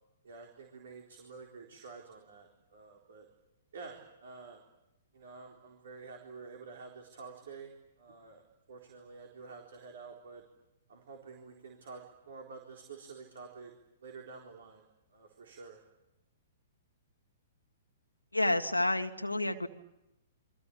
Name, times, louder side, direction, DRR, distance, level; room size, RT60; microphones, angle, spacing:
voice 1, 0.2-3.3 3.7-4.6 5.1-7.7 8.0-8.4 8.7-10.4 10.9-13.7 14.0-14.8 15.1-15.8, right 4 dB, 60° right, 2 dB, 4.1 m, -49 dB
voice 2, 18.3-19.7, left 2 dB, 90° left, 6 dB, 1.8 m, -29 dB
28.0 x 23.5 x 8.6 m, 0.92 s
figure-of-eight pair, 115°, 0 cm